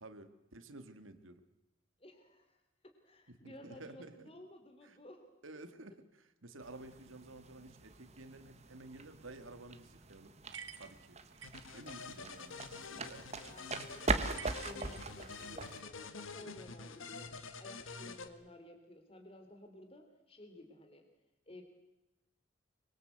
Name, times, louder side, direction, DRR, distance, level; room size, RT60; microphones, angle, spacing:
voice 1, 0.0-1.4 3.3-4.3 4.8-5.0 5.4-10.3 10.8-11.2 11.6-13.4 14.0-14.3 16.4-16.5 18.0-18.1, right 2 dB, 85° right, 10 dB, 2.1 m, -53 dB
voice 2, 2.0-2.6 2.8-5.3 13.4-21.0 21.5-21.6, left 1 dB, 30° left, 4 dB, 3.1 m, -54 dB
sound 1, 6.6-15.8, right 3 dB, 35° right, 1.5 m, -41 dB
sound 2, 10.5-11.8 14.4-15.5, right 7 dB, 65° right, 1.5 m, -50 dB
sound 3, 11.4-18.3, left 4 dB, 85° left, 1.8 m, -48 dB
24.5 x 23.0 x 8.0 m, 0.94 s
head